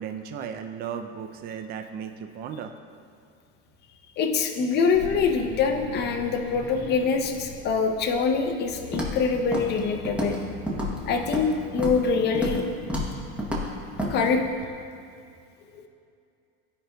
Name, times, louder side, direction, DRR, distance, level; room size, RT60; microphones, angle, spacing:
voice 1, 0.0-2.7 14.6-14.7, right 7 dB, 35° right, 7 dB, 0.4 m, -35 dB
voice 2, 4.2-10.4 11.1-11.5 11.7-12.6 14.1-14.4, left 5 dB, 35° left, 4 dB, 0.6 m, -24 dB
sound 1, 4.9-14.8, equal, 65° right, 1.3 m, -43 dB
Walk footsteps, 8.9-9.2 9.5-9.8 10.1-10.4 10.7-11.5 11.8-12.0 12.3-12.6 12.9-13.1 13.4-13.7 14.0-14.1, equal, 5° right, 0.9 m, -29 dB
12.5 x 5.0 x 2.2 m, 2.4 s
supercardioid pair, 140°, 30 cm